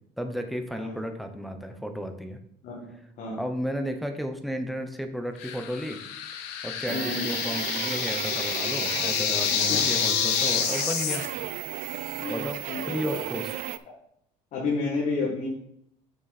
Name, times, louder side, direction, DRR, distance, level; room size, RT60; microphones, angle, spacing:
voice 1, 0.2-2.4 3.4-6.0 6.6-11.2 12.3-13.5, equal, ahead, 5 dB, 0.8 m, -33 dB
voice 2, 2.6-3.4 6.9-7.3 9.7-9.8 12.2-13.0 14.5-15.5, left 3 dB, 50° left, -2 dB, 1.8 m, -31 dB
sound 1, 5.4-11.3, left 8 dB, 90° left, 1.0 m, -28 dB
sound 2, 6.9-13.8, right 14 dB, 60° right, 0.4 m, -34 dB
7.0 x 6.1 x 4.1 m, 0.72 s
cardioid pair, 145°, 16 cm